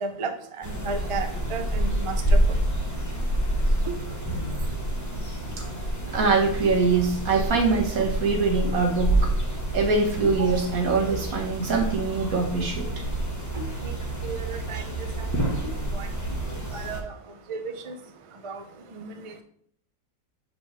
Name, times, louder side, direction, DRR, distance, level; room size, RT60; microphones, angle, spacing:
voice 1, 0.0-2.6 3.9-4.0 13.8-13.9 14.2-14.8 15.2-15.3 15.9-16.1 16.5-17.1 17.5-18.0 18.4-18.6 18.9-19.4, right 4 dB, 55° right, 6 dB, 0.3 m, -34 dB
sound 1, 0.6-17.0, right 1 dB, 15° left, 0.9 m, -28 dB
voice 2, 6.1-9.3 9.7-13.0 13.5-13.6, right 4 dB, 70° right, 1 dB, 1.6 m, -23 dB
5.1 x 3.5 x 5.7 m, 0.63 s
omnidirectional pair, 1.5 m